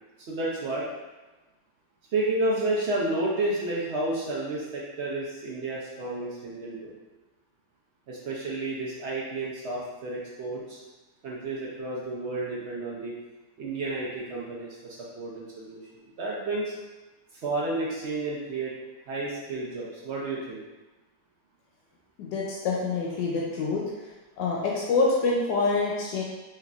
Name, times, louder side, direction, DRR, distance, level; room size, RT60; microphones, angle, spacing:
voice 1, 0.3-0.8 2.1-6.9 8.1-10.8 11.2-13.1 13.6-16.7 17.3-18.8 19.1-20.6, right 2 dB, 80° right, -5 dB, 0.6 m, -31 dB
voice 2, 22.2-23.8 24.4-26.2, left 3 dB, 90° left, -3 dB, 1.2 m, -26 dB
3.7 x 3.1 x 2.3 m, 1.1 s
omnidirectional pair, 1.9 m